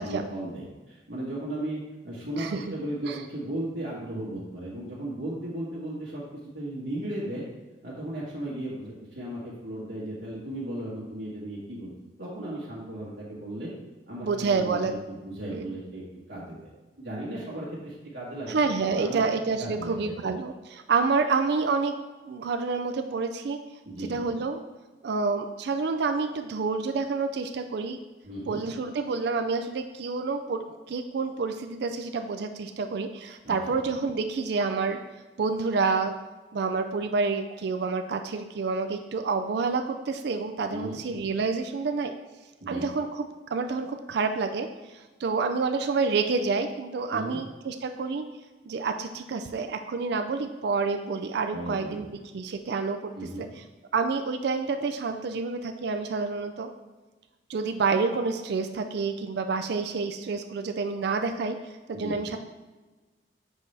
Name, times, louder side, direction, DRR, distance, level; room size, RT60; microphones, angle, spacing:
voice 1, 0.0-6.2 6.5-7.5 7.8-11.9 12.2-13.7 14.1-16.0 16.3-16.7 17.0-19.2 19.6-20.1 23.8-24.2 28.2-28.6 33.4-33.8 40.7-41.0 42.6-42.8 47.1-47.4 51.5-52.1 53.1-53.5 61.9-62.2, right 1 dB, 90° right, -8 dB, 1.6 m, -36 dB
voice 2, 14.2-15.0 15.5-15.7 18.5-22.0 22.3-23.6 24.1-24.6 25.0-28.0 28.5-35.0 35.4-36.1 36.5-42.1 42.7-43.2 43.5-44.7 45.2-48.2 48.7-52.1 52.3-53.1 53.4-53.5 53.9-56.7 57.5-61.6 61.9-62.4, right 4 dB, 65° right, 7 dB, 0.4 m, -28 dB
7.3 x 4.1 x 3.3 m, 1.2 s
head